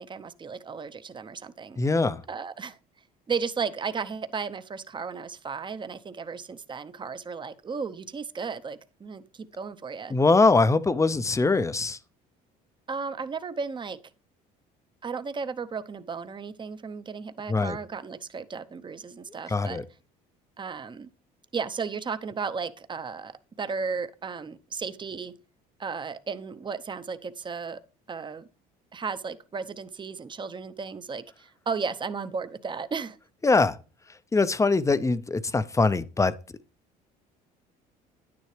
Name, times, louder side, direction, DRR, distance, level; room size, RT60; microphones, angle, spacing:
voice 1, 0.0-1.8 2.3-2.8 3.3-10.1 12.9-14.0 15.0-19.8 20.6-21.1 21.5-25.3 25.8-27.8 28.1-28.4 28.9-33.2, right 5 dB, 25° right, 0.7 m, -34 dB
voice 2, 1.8-2.2 10.1-12.0 17.5-17.8 19.5-19.8 33.4-33.8 34.3-36.3, left 3 dB, 15° left, 0.6 m, -22 dB
9.8 x 9.4 x 3.3 m
supercardioid pair, 90°, 19 cm